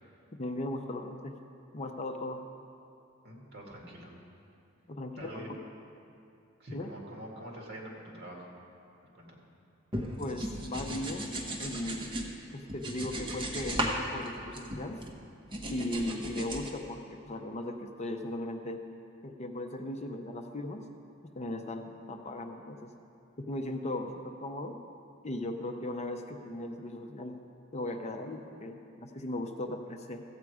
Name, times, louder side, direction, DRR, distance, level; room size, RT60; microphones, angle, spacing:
voice 1, 0.3-1.4 1.7-2.4 4.9-5.6 6.7-6.9 10.2-12.1 12.5-15.0 15.7-18.8 19.2-20.8 21.2-22.9 23.4-24.8 25.2-27.4 27.7-30.2, left 1 dB, 35° left, 5 dB, 0.6 m, -37 dB
voice 2, 3.2-4.1 5.2-5.5 6.6-8.5 9.0-9.4 16.0-16.2, right 1 dB, 55° right, -1 dB, 2.1 m, -45 dB
sound 1, 9.9-12.3 12.7-14.0 14.3-15.1 15.5-16.7, right 1 dB, 25° right, 1.1 m, -36 dB
14.5 x 8.2 x 4.8 m, 2.6 s
head